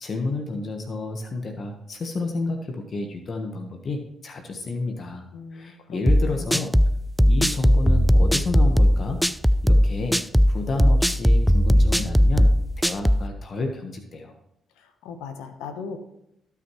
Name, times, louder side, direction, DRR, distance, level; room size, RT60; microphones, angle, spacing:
voice 1, 0.0-5.2 5.5-6.7 7.3-9.2 9.6-10.2 10.5-12.5 12.8-14.3, left 3 dB, 55° left, 4 dB, 1.3 m, -30 dB
voice 2, 5.3-6.7 14.8-16.0, left 5 dB, 90° left, 7 dB, 1.1 m, -39 dB
sound 1, 6.1-13.3, equal, ahead, 0.4 m, -18 dB
16.5 x 5.9 x 3.2 m, 0.81 s
supercardioid pair, 55°, 0 cm